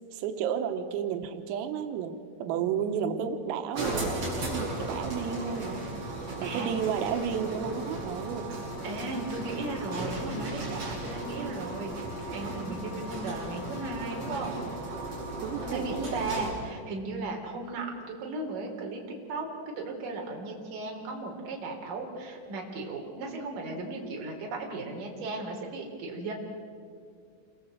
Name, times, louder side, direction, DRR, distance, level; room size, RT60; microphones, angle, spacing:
voice 1, 0.1-2.1 2.4-5.9 6.4-8.5 15.4-16.1, right 7 dB, 90° right, 6 dB, 3.9 m, -32 dB
voice 2, 2.5-3.0 6.2-6.7 8.8-14.6 15.6-19.0 19.3-19.4 19.8-26.3, right 3 dB, 45° right, 0 dB, 4.8 m, -36 dB
sound 1, 3.7-16.7, right 1 dB, 30° right, 8.0 m, -36 dB
28.0 x 23.5 x 7.9 m, 2.2 s
omnidirectional pair, 6.0 m